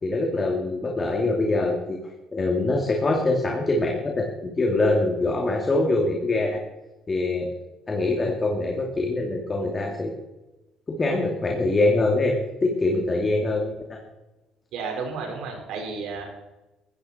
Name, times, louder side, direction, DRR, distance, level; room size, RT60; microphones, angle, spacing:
voice 1, 0.0-2.0 2.3-6.6 7.1-7.5 7.9-10.1 10.9-14.0, left 2 dB, 30° left, 1 dB, 2.7 m, -24 dB
voice 2, 14.7-16.2, right 4 dB, 75° right, 2 dB, 4.8 m, -32 dB
16.0 x 14.5 x 4.4 m, 1.0 s
supercardioid pair, 80°, 0 cm